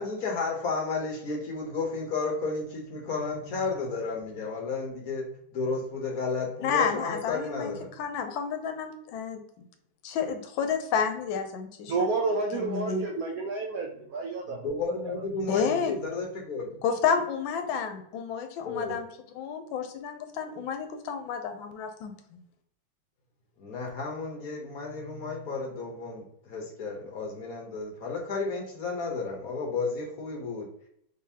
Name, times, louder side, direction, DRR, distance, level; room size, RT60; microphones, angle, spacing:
voice 1, 0.0-5.2 5.5-7.9 14.5-16.8 18.6-19.0 23.6-30.7, left 4 dB, 55° left, 0 dB, 1.2 m, -32 dB
voice 2, 6.6-7.7 8.0-9.6 10.0-11.9 12.5-13.0 15.5-15.9 16.8-19.1 19.3-22.4, left 6 dB, 80° left, 7 dB, 1.4 m, -30 dB
voice 3, 11.9-14.8 15.1-15.2 15.5-15.6, right 3 dB, 70° right, 0 dB, 0.8 m, -30 dB
3.9 x 3.6 x 2.7 m, 0.71 s
omnidirectional pair, 2.1 m